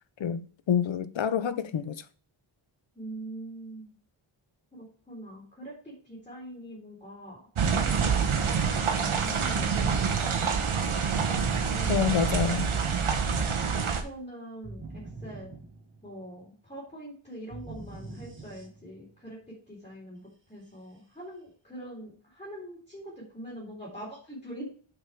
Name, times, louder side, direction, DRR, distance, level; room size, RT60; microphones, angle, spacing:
voice 1, 0.2-2.0 11.9-12.7, left 7 dB, 65° left, 0.8 m, -27 dB
voice 2, 3.0-3.9 4.7-10.5 11.6-12.2 13.5-15.5 16.0-20.2 20.5-24.6, right 1 dB, 15° left, 3.6 m, -43 dB
sound 1, 7.6-14.0, right 6 dB, 75° right, 1.2 m, -26 dB
sound 2, 14.6-16.4 17.5-19.2, right 3 dB, 25° right, 1.4 m, -44 dB
6.9 x 5.6 x 4.7 m
wide cardioid pair, 135°, 50 cm